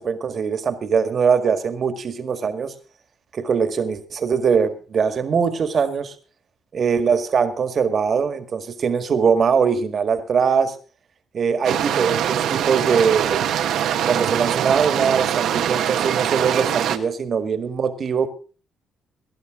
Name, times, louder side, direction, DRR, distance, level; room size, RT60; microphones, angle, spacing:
voice 1, 0.0-2.7 3.3-6.1 6.7-10.8 11.3-13.4 14.0-18.3, right 6 dB, 55° right, 1.9 m, -21 dB
sound 1, 11.6-17.0, right 10 dB, 75° right, 1.3 m, -23 dB
19.0 x 11.5 x 3.8 m
supercardioid pair, 60°, 0 cm